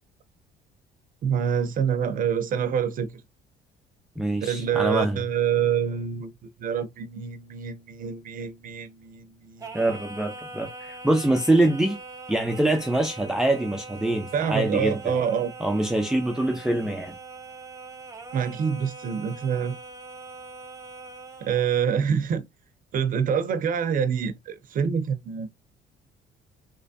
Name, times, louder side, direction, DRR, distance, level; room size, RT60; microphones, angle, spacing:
voice 1, 1.2-3.1 4.4-9.7 14.3-15.5 18.3-19.8 21.4-22.4 22.9-25.5, right 7 dB, 55° right, 0.7 m, -26 dB
voice 2, 4.2-5.2 9.7-12.0 12.3-15.1 15.6-17.1, right 1 dB, 5° right, 0.5 m, -24 dB
Singing, 9.6-21.7, right 3 dB, 20° right, 0.9 m, -42 dB
3.3 x 3.2 x 2.7 m
cardioid pair, 110°, 17 cm